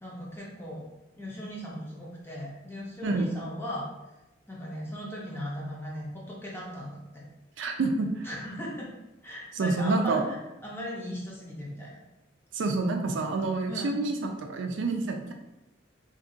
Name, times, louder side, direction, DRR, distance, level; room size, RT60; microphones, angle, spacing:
voice 1, 0.0-0.9 1.1-3.9 4.5-7.2 8.2-8.9 9.2-12.0 13.7-14.0, equal, 10° left, -5 dB, 0.7 m, -38 dB
voice 2, 7.6-8.3 9.6-10.2 12.5-15.3, right 3 dB, 65° right, 4 dB, 0.4 m, -28 dB
2.6 x 2.4 x 3.7 m, 0.96 s
head